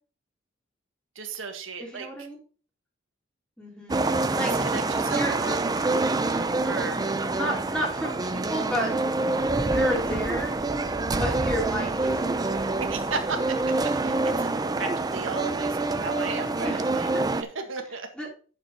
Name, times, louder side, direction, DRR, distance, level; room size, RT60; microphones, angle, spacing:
voice 1, 1.2-2.1 4.7-5.6 6.6-7.0 12.8-14.5 14.8-17.1 17.4-18.1, right 4 dB, 75° right, 5 dB, 1.7 m, -34 dB
voice 2, 1.8-2.4 3.6-4.5 5.1-5.4 7.3-8.9 9.6-10.6 11.1-12.5 16.6-17.2 18.1-18.3, equal, 5° left, -2 dB, 3.3 m, -31 dB
sound 1, 3.9-17.4, right 2 dB, 20° right, 0.5 m, -26 dB
9.0 x 6.8 x 4.2 m, 0.40 s
head